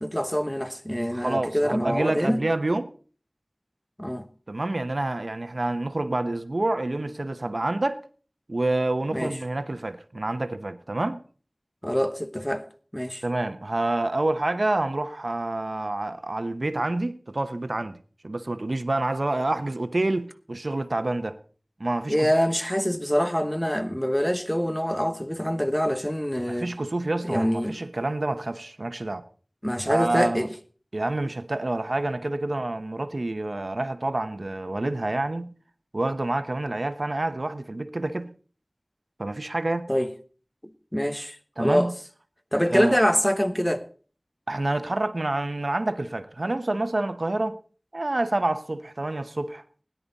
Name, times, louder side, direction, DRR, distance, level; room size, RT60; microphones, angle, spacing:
voice 1, 0.0-2.4 4.0-4.3 9.1-9.3 11.8-12.7 12.9-13.2 22.1-26.7 27.2-27.7 29.6-30.5 39.9-40.1 40.9-41.9 42.5-43.9, equal, 10° left, 1.1 m, -25 dB
voice 2, 1.1-2.9 4.5-8.0 8.5-11.2 13.2-18.0 18.2-21.4 21.8-22.3 26.5-29.2 29.9-30.5 30.9-35.5 35.9-38.4 39.2-39.9 41.6-41.9 42.7-43.0 44.5-47.6 47.9-49.6, right 2 dB, 80° right, 0.8 m, -28 dB
17.5 x 10.5 x 4.0 m
wide cardioid pair, 40°, 0 cm